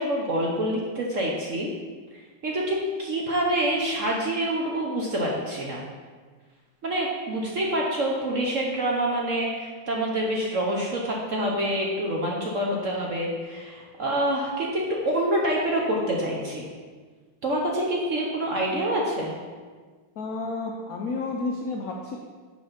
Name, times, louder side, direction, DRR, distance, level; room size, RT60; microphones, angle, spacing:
voice 1, 0.0-1.7 2.4-5.8 6.8-16.7 17.4-19.3, right 1 dB, 50° right, -2 dB, 1.0 m, -26 dB
voice 2, 20.2-22.2, left 3 dB, 70° left, 0 dB, 0.8 m, -31 dB
6.2 x 5.2 x 5.7 m, 1.5 s
omnidirectional pair, 2.2 m